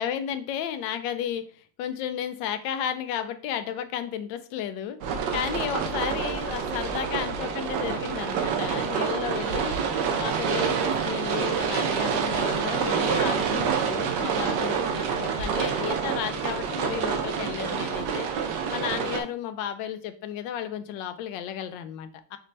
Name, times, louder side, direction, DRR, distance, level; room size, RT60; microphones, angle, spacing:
voice 1, 0.0-1.5 1.8-9.8 10.2-18.3 18.7-22.4, left 9 dB, 75° left, 10 dB, 1.2 m, -33 dB
sound 1, 5.0-19.2, right 6 dB, 70° right, 1.2 m, -27 dB
5.3 x 3.2 x 2.6 m, 0.43 s
omnidirectional pair, 2.1 m